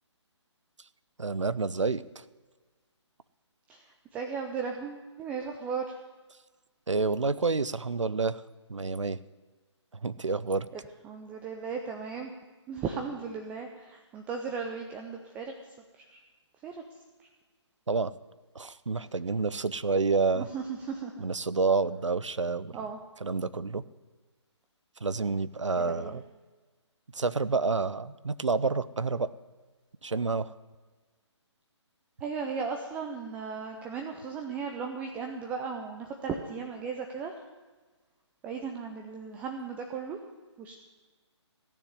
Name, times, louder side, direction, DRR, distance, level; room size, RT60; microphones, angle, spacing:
voice 1, 1.2-2.2 6.9-8.4 8.7-9.2 10.0-10.7 17.9-18.1 18.5-20.5 21.2-22.8 23.2-23.8 25.0-26.2 27.1-29.3 30.0-30.5, right 4 dB, 85° right, 16 dB, 0.7 m, -29 dB
voice 2, 3.7-5.9 10.7-12.3 12.7-15.5 16.0-16.2 16.6-16.8 17.2-17.3 20.3-21.2 22.7-23.0 25.8-26.2 32.2-37.4 38.4-40.2 40.6-40.7, right 5 dB, 10° right, 4 dB, 0.5 m, -36 dB
15.5 x 7.1 x 9.7 m, 1.3 s
figure-of-eight pair, 145°, 15 cm